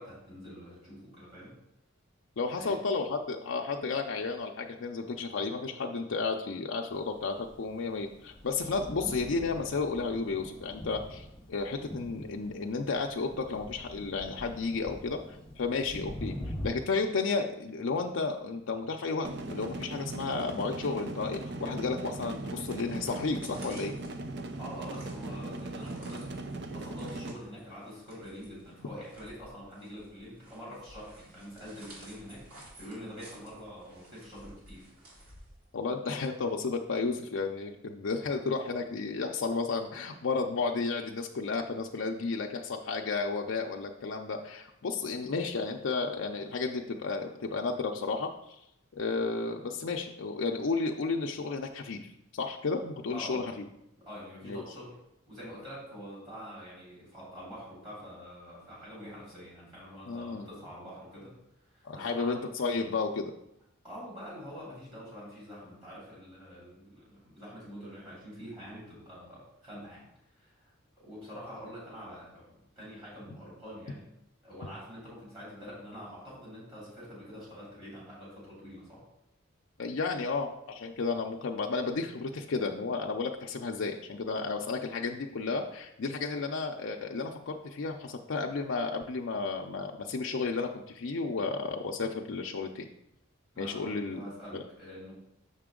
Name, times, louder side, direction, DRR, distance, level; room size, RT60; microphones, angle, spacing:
voice 1, 0.0-1.5 2.6-2.8 24.5-34.9 53.1-53.5 54.0-54.9 55.3-61.3 61.6-62.4 63.8-70.0 70.4-70.7 71.0-74.1 74.4-79.0 93.5-95.1, equal, 25° right, -8 dB, 3.0 m, -46 dB
voice 2, 2.4-15.2 15.6-23.9 35.7-48.6 48.9-52.0 52.3-53.6 54.4-54.6 60.1-60.5 61.8-63.3 79.8-92.9 93.6-94.2 94.5-94.6, left 4 dB, 65° left, 1 dB, 0.5 m, -32 dB
Thunder, 7.2-16.7, equal, 5° left, 1.0 m, -44 dB
sound 1, 19.2-27.3, right 2 dB, 50° right, 0.5 m, -39 dB
steps in forest, 22.4-36.0, right 1 dB, 90° right, 2.8 m, -55 dB
6.5 x 5.9 x 3.7 m, 0.81 s
head